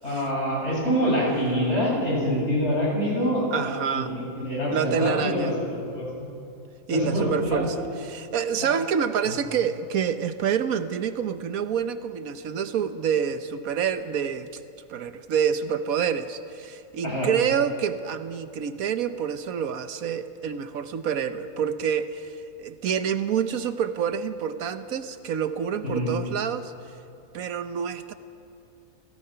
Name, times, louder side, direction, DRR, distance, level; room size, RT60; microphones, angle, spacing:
voice 1, 0.0-5.5 5.9-6.1 6.9-7.6 8.6-8.7 17.0-17.3 25.8-26.1, equal, 50° left, -4 dB, 7.4 m, -25 dB
voice 2, 3.5-4.1 4.7-5.5 6.9-7.7 8.0-14.5 14.9-26.7 27.3-28.1, right 7 dB, 80° right, 10 dB, 1.3 m, -27 dB
30.0 x 17.0 x 5.7 m, 2.5 s
omnidirectional pair, 1.5 m